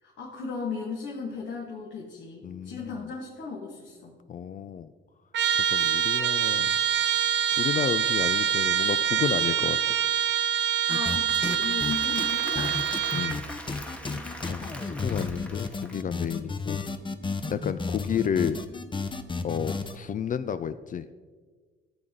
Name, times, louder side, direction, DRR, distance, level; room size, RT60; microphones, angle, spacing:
voice 1, 0.0-4.2 10.9-12.9 14.1-14.3, left 4 dB, 70° left, -4 dB, 1.9 m, -36 dB
voice 2, 2.4-3.1 4.3-4.9 5.5-6.7 7.6-10.0 13.1-13.4 14.5-16.8 17.5-18.6 19.4-21.1, left 8 dB, 40° left, 12 dB, 0.4 m, -31 dB
Trumpet, 5.3-13.4, right 9 dB, 65° right, 0.5 m, -25 dB
sound 1, 10.9-11.2 11.4-20.0, left 4 dB, 25° left, 0.8 m, -32 dB
Applause / Crowd, 11.0-16.3, left 1 dB, 5° left, 1.1 m, -43 dB
13.0 x 7.8 x 3.8 m, 1.5 s
cardioid pair, 90°, 20 cm